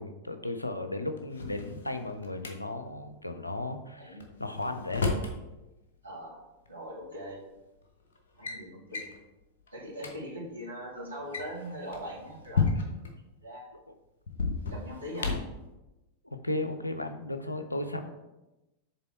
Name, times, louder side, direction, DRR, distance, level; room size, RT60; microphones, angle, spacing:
voice 1, 0.0-5.1 16.3-18.1, left 2 dB, 85° left, 8 dB, 0.5 m, -35 dB
Drawer open or close, 1.2-2.5 4.2-5.4 6.7-6.8 7.6-7.8 8.1-8.6 8.9-9.2 9.7-9.8 10.0-10.1 11.1-13.1 14.3-15.6, left 4 dB, 65° left, 1.0 m, -32 dB
voice 2, 6.0-6.4 6.7-7.4 8.3-9.1 9.7-12.7 13.4-13.7 14.7-15.3 17.4-17.5 18.0-18.1, equal, 80° right, -4 dB, 1.8 m, -41 dB
6.8 x 3.8 x 4.3 m, 1.0 s
figure-of-eight pair, 90°, 0 cm